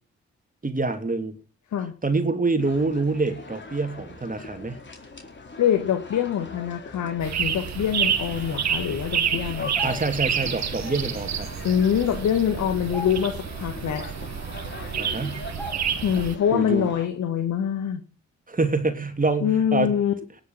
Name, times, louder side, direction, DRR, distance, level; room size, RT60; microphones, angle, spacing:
voice 1, 0.6-1.4 2.0-4.8 9.8-11.5 15.0-15.4 16.5-16.9 18.5-19.9, right 3 dB, 30° right, 8 dB, 3.0 m, -26 dB
sound 1, 2.6-17.1, left 3 dB, 40° left, 4.6 m, -41 dB
voice 2, 5.6-9.9 11.6-14.0 16.0-18.0 19.4-20.1, left 9 dB, 75° left, 6 dB, 1.8 m, -24 dB
sound 2, 7.2-16.3, right 8 dB, 65° right, 2.0 m, -29 dB
sound 3, 9.6-10.3 11.8-11.9 12.2-12.4 12.8-13.6 14.0-14.1 14.9-15.0 15.6-16.2 16.6-16.7, left 1 dB, 5° left, 2.9 m, -39 dB
18.0 x 6.9 x 7.5 m, 0.39 s
supercardioid pair, 50°, 29 cm